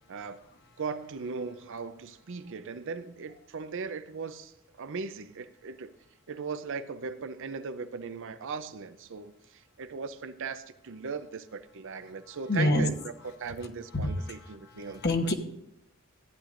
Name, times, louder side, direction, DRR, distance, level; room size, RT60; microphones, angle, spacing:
voice 1, 0.1-0.4 0.8-5.9 6.3-13.1 13.4-15.0, right 5 dB, 60° right, 12 dB, 0.6 m, -38 dB
voice 2, 12.5-12.9 13.4-13.5 13.9-15.3, left 1 dB, 50° left, 5 dB, 1.0 m, -28 dB
14.5 x 9.9 x 2.5 m, 0.82 s
head